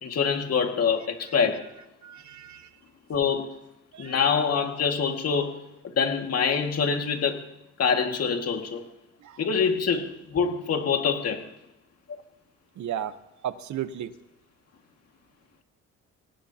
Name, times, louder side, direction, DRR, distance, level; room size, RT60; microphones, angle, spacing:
voice 1, 0.0-1.7 3.1-3.6 4.0-5.6 5.9-7.4 7.8-8.9 9.4-11.5, left 6 dB, 55° left, 4 dB, 2.2 m, -25 dB
voice 2, 2.0-2.7 3.9-4.1 9.2-9.4 12.8-13.1 13.4-14.1, right 10 dB, 70° right, 11 dB, 1.2 m, -34 dB
25.0 x 18.5 x 2.9 m, 0.95 s
cardioid pair, 90°, 30 cm